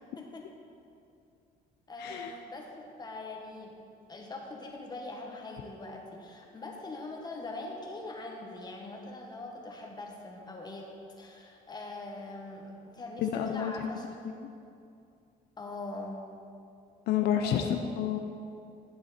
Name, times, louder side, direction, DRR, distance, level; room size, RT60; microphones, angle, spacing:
voice 1, 0.2-0.5 1.9-3.7 4.1-10.9 11.2-14.4 15.6-16.3 17.4-17.8, left 2 dB, 25° left, 0 dB, 1.5 m, -42 dB
voice 2, 2.0-2.3 13.2-13.9 17.1-18.2, left 9 dB, 75° left, 5 dB, 0.6 m, -29 dB
11.0 x 7.8 x 4.3 m, 2.5 s
cardioid pair, 110°, 17 cm